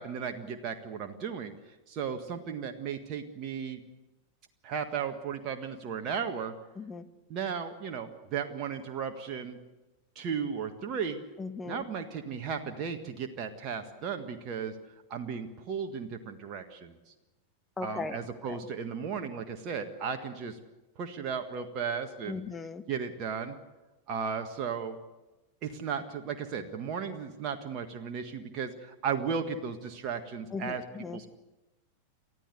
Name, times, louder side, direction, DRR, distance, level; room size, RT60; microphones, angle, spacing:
voice 1, 0.0-1.5 1.9-3.8 4.6-6.5 7.3-9.6 10.1-11.2 11.7-14.8 15.1-16.9 17.8-20.6 21.0-22.4 22.9-23.6 24.1-25.0 25.6-30.8 31.1-31.3, right 6 dB, 35° right, 4 dB, 1.7 m, -35 dB
voice 2, 6.7-7.1 11.4-11.8 17.8-18.2 18.5-18.6 22.3-22.8 30.5-31.2, left 4 dB, 15° left, 9 dB, 1.3 m, -38 dB
29.5 x 14.0 x 8.1 m, 1.1 s
figure-of-eight pair, 90°, 0 cm